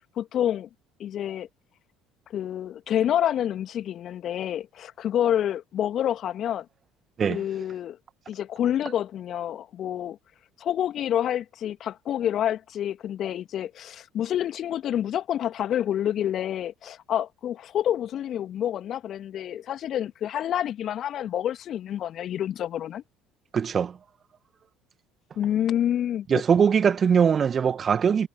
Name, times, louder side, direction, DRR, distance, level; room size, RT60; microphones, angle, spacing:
voice 1, 0.2-0.7 1.0-1.5 2.3-6.7 7.3-8.0 8.3-10.2 10.6-23.0 25.4-26.3, left 10 dB, 50° left, 2.1 m, -28 dB
voice 2, 23.5-23.9 26.3-28.3, right 7 dB, 35° right, 1.9 m, -21 dB
figure-of-eight pair, 60°, 0 cm